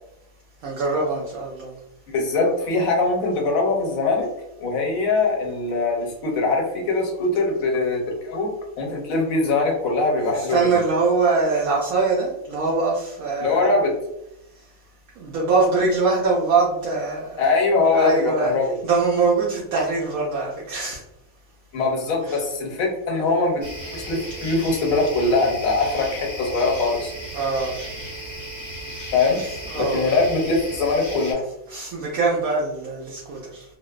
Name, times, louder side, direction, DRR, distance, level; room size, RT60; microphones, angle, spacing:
voice 1, 0.6-1.7 10.3-13.8 15.2-17.5 17.9-18.5 18.8-21.0 22.2-22.4 27.3-27.7 29.7-30.1 31.7-33.6, right 3 dB, 80° right, -4 dB, 1.0 m, -23 dB
voice 2, 2.1-4.3 4.6-10.7 13.4-13.9 17.4-18.8 21.7-27.1 29.1-29.5 29.8-31.5, left 3 dB, 75° left, 1 dB, 1.1 m, -22 dB
sound 1, 23.6-31.3, right 1 dB, 20° left, 0.6 m, -35 dB
2.9 x 2.0 x 2.3 m, 0.84 s
omnidirectional pair, 1.5 m